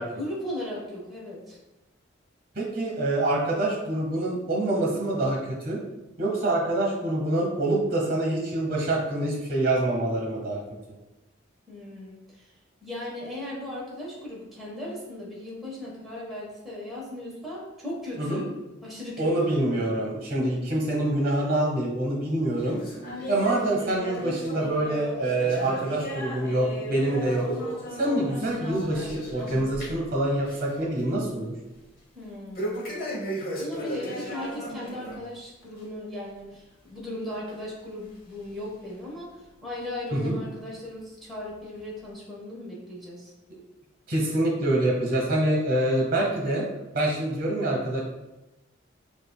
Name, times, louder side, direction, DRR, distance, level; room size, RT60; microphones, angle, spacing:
voice 1, 0.1-1.6 11.7-12.5 12.8-18.5 18.8-19.6 32.1-32.8 33.6-43.3, left 1 dB, ahead, -7 dB, 1.1 m, -37 dB
voice 2, 2.5-5.8 6.2-10.6 18.2-18.4 19.2-22.8 23.3-27.5 27.9-31.6 40.1-40.3 44.1-46.6 46.9-48.0, right 1 dB, 45° right, -2 dB, 1.1 m, -26 dB
sound 1, 22.6-30.1 30.4-30.8 31.1-31.2 32.5-35.2 35.6-35.8 36.5-36.6 37.5-37.6 38.4-38.5, equal, 50° left, 0.9 m, -35 dB
7.4 x 2.5 x 2.2 m, 1.0 s
head